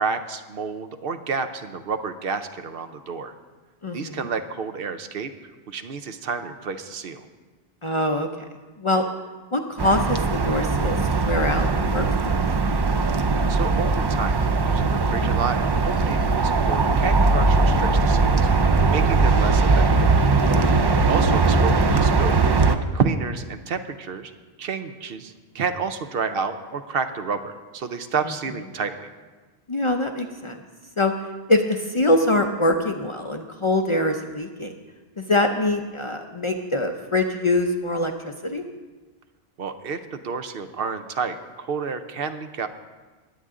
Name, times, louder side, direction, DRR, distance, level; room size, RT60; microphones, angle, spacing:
voice 1, 0.0-3.3 3.9-5.3 5.7-7.3 13.5-20.1 20.7-24.3 24.6-29.1 39.6-42.7, right 5 dB, 65° right, 9 dB, 0.9 m, -30 dB
voice 2, 3.8-4.2 7.8-8.3 8.8-9.0 9.5-12.1 18.5-18.9 20.4-20.8 29.7-30.6 31.0-31.1 31.5-34.7 35.2-38.1 38.4-38.6, left 1 dB, 35° left, 4 dB, 0.6 m, -24 dB
sound 1, 9.8-22.8, right 3 dB, 40° right, 0.3 m, -20 dB
20.5 x 8.1 x 3.7 m, 1.3 s
omnidirectional pair, 1.1 m